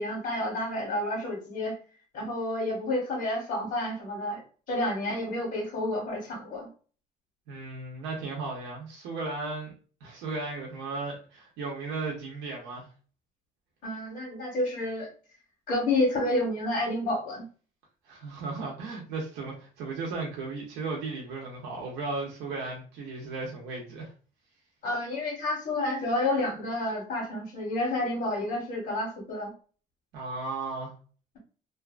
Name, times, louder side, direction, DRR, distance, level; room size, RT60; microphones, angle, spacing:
voice 1, 0.0-1.8 2.1-4.4 4.7-6.7 13.8-15.1 15.7-17.4 24.8-29.5, left 1 dB, 70° left, 1.1 m, -29 dB
voice 2, 7.5-9.7 10.0-12.9 18.1-24.1 30.1-30.9, right 3 dB, 90° right, 0.7 m, -35 dB
2.6 x 2.3 x 2.4 m
cardioid pair, 110°, 17 cm